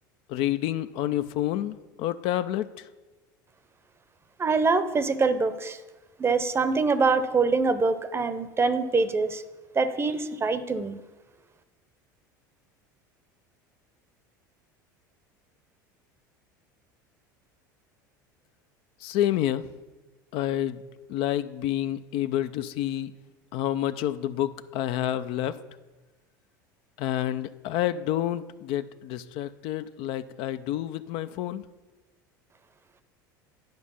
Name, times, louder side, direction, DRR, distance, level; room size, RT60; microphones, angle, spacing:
voice 1, 0.3-2.7 19.0-19.7 20.3-20.8 21.1-23.1 23.5-25.6 27.0-31.6, left 12 dB, 60° left, 12 dB, 0.4 m, -28 dB
voice 2, 4.4-5.8 6.2-9.4 9.7-11.0, right 4 dB, 25° right, 13 dB, 0.7 m, -24 dB
10.5 x 5.1 x 5.5 m, 1.2 s
hypercardioid pair, 80°, 11 cm